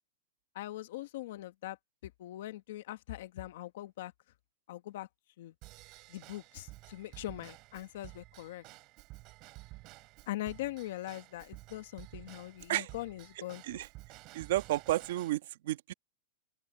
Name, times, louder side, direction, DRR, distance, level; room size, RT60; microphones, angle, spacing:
voice 1, 0.5-1.8 2.0-4.1 4.7-5.1 5.4-5.5 6.1-8.6 10.3-13.6, left 15 dB, 65° left, 1.3 m, -41 dB
Drum kit / Drum / Bell, 5.6-15.3, right 21 dB, 35° right, 3.7 m, -52 dB
voice 2, 14.3-15.9, right 15 dB, 65° right, 1.2 m, -32 dB
open air
supercardioid pair, 165°, 0 cm